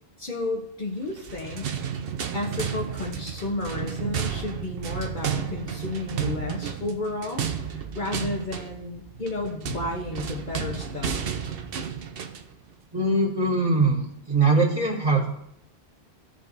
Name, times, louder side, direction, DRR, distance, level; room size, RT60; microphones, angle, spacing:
voice 1, 0.2-1.7 2.3-11.2, left 2 dB, 50° left, -1 dB, 1.1 m, -32 dB
sound 1, 1.1-12.5, right 7 dB, 65° right, 0.9 m, -32 dB
voice 2, 12.9-15.3, right 3 dB, 20° right, -5 dB, 2.0 m, -22 dB
15.0 x 5.2 x 2.6 m, 0.76 s
omnidirectional pair, 1.1 m